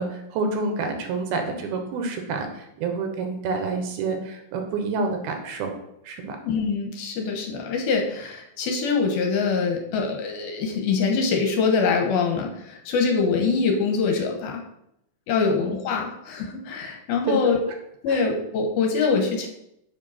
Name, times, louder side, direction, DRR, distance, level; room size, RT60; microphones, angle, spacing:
voice 1, 0.0-5.7 6.0-6.4 15.3-15.6 17.3-17.5 18.1-18.2, right 3 dB, 85° right, 4 dB, 3.1 m, -28 dB
voice 2, 6.4-14.6 15.3-17.6 18.0-19.5, left 5 dB, 85° left, 2 dB, 3.1 m, -24 dB
7.6 x 5.3 x 5.8 m, 0.80 s
omnidirectional pair, 4.3 m